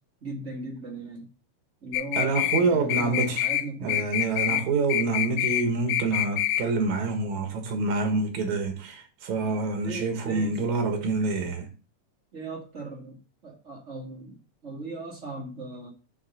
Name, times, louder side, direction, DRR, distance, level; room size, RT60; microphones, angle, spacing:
voice 1, 0.2-1.3 1.8-4.0 4.5-4.7 9.8-10.6 11.4-11.5 12.3-15.9, right 2 dB, 30° right, 1.4 m, -38 dB
sound 1, 1.9-2.6 2.9-3.6 3.9-4.6 4.9-5.6 5.9-6.6, left 13 dB, 85° left, 2.1 m, -26 dB
voice 2, 2.2-3.5 3.8-11.7, right 3 dB, 80° right, 2.8 m, -27 dB
8.2 x 3.6 x 6.5 m
omnidirectional pair, 3.3 m